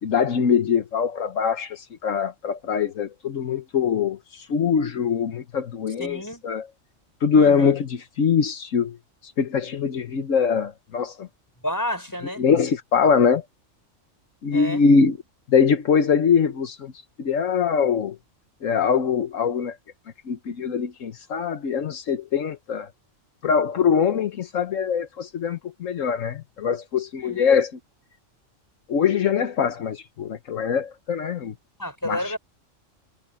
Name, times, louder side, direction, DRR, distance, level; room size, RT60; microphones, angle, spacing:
voice 1, 0.0-6.7 7.2-9.0 9.2-11.3 12.4-13.4 14.4-15.2 15.5-16.9 17.2-18.2 18.6-19.8 20.3-22.9 23.4-27.7 28.9-31.5 32.0-32.4, left 6 dB, 80° left, 1.4 m, -23 dB
voice 2, 6.0-6.4 7.3-7.7 11.6-12.4 14.5-14.8 27.2-27.4 31.8-32.4, equal, 15° left, 6.3 m, -30 dB
omnidirectional pair, 1.3 m